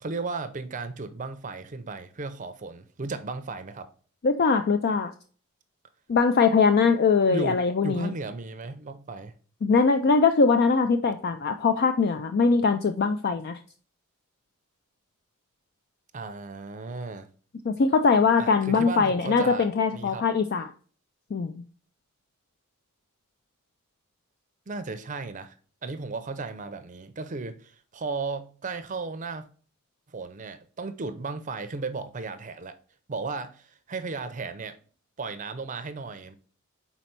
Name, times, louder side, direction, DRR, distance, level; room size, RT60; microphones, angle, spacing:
voice 1, 0.0-3.9 7.3-9.3 16.1-17.3 18.4-20.3 24.7-29.5 30.1-32.8 33.1-34.8 35.2-36.3, right 3 dB, 35° right, 0.5 m, -35 dB
voice 2, 4.2-5.1 6.1-8.1 9.6-13.6 17.6-20.7 21.3-21.6, left 4 dB, 50° left, 0.4 m, -22 dB
5.4 x 4.1 x 4.4 m
head